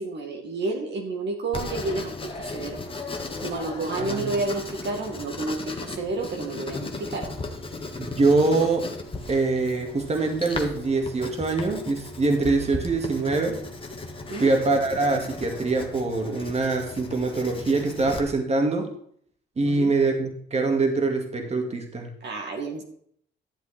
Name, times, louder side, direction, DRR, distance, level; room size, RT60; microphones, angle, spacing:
voice 1, 0.0-2.8 3.4-7.3 14.3-14.5 19.6-20.0 22.2-22.8, right 3 dB, 60° right, 1 dB, 2.2 m, -30 dB
Writing, 1.5-18.2, left 3 dB, 25° left, 1.7 m, -36 dB
voice 2, 8.0-8.9 9.3-13.6 14.4-18.9 19.6-22.1, right 3 dB, 35° right, 2 dB, 2.3 m, -24 dB
12.0 x 7.6 x 4.4 m, 0.63 s
cardioid pair, 90°, 20 cm